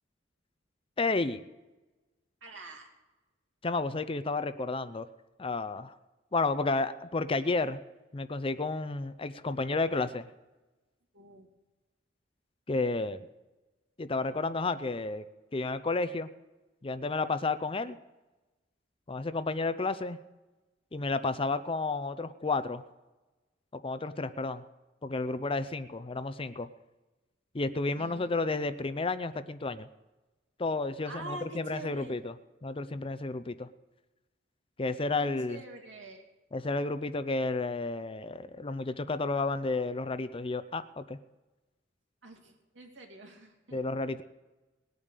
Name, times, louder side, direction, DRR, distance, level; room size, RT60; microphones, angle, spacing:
voice 1, 1.0-1.4 3.6-5.1 5.4-5.9 6.3-7.8 8.1-10.3 12.7-13.2 14.0-15.2 15.5-16.3 16.8-18.0 19.1-20.2 20.9-22.8 23.7-24.6 25.0-26.7 27.5-29.9 30.6-32.3 32.6-33.7 34.8-35.6 36.5-41.2 43.7-44.2, left 3 dB, 30° left, 12 dB, 0.6 m, -31 dB
voice 2, 2.4-2.9 11.1-11.5 28.0-28.3 31.0-32.2 35.2-36.3 42.2-43.8, right 2 dB, 70° right, 2 dB, 2.9 m, -46 dB
19.5 x 8.9 x 6.7 m, 1.1 s
head